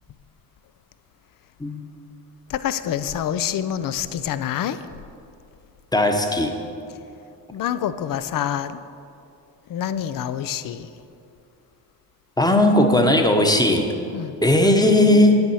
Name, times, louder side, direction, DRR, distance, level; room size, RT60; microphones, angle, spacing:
voice 1, 2.5-4.8 7.5-8.8 9.7-10.9 14.1-14.4, left 10 dB, 50° left, 13 dB, 0.6 m, -26 dB
voice 2, 5.9-6.5 12.4-13.9 14.4-15.4, left 1 dB, 10° left, 4 dB, 1.1 m, -17 dB
9.1 x 7.1 x 6.3 m, 2.7 s
cardioid pair, 85°, 43 cm